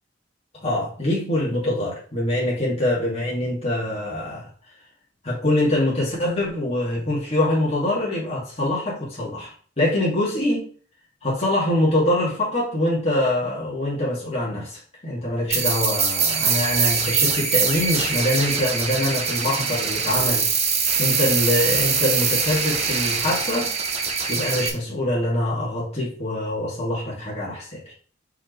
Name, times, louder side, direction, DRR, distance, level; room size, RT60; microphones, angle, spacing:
voice 1, 0.5-4.5 5.2-10.6 11.2-20.5 21.0-23.7 24.3-27.9, left 1 dB, 35° left, 2.5 m, -24 dB
sound 1, 15.5-24.7, right 5 dB, 35° right, 1.3 m, -23 dB
5.5 x 5.0 x 3.4 m
head